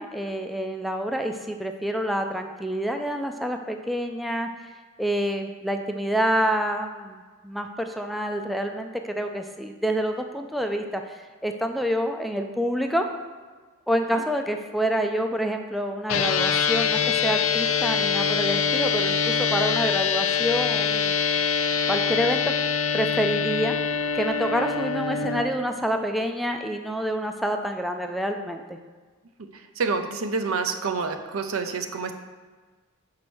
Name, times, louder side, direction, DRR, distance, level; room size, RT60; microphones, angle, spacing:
voice 1, 0.0-4.5 5.0-13.1 13.9-21.2 21.9-23.8 24.1-28.8, equal, ahead, 4 dB, 0.3 m, -27 dB
sound 1, 16.1-25.4, left 6 dB, 75° left, 0.6 m, -24 dB
voice 2, 29.8-32.1, right 4 dB, 75° right, 7 dB, 0.6 m, -27 dB
5.3 x 4.8 x 6.0 m, 1.4 s
head